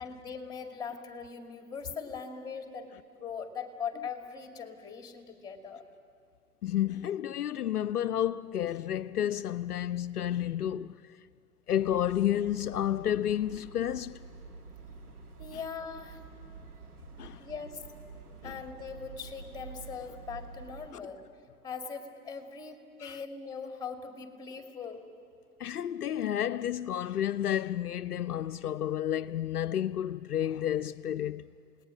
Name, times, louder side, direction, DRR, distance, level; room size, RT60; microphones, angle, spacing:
voice 1, 0.0-2.9 3.2-5.8 15.4-16.2 17.4-17.8 18.4-21.2 21.6-25.1, left 6 dB, 10° left, 2.2 m, -40 dB
voice 2, 6.6-11.0 11.7-14.2 15.5-15.6 17.2-17.5 18.4-18.6 20.9-21.0 23.0-23.2 25.6-31.5, left 11 dB, 75° left, 0.5 m, -31 dB
sound 1, 11.7-20.9, right 4 dB, 70° right, 2.1 m, -48 dB
28.5 x 19.0 x 6.5 m
figure-of-eight pair, 100°, 45 cm